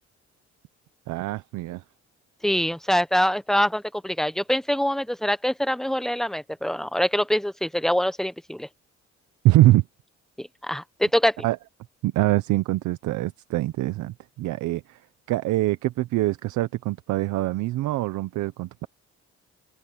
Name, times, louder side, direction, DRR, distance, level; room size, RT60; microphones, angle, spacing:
voice 1, 1.1-1.8 9.4-9.8 11.4-11.6 12.0-15.0 15.3-18.9, right 17 dB, 90° right, 0.8 m, -23 dB
voice 2, 2.4-8.7 10.4-11.4, equal, ahead, 1.1 m, -24 dB
open air
cardioid pair, 85°, 29 cm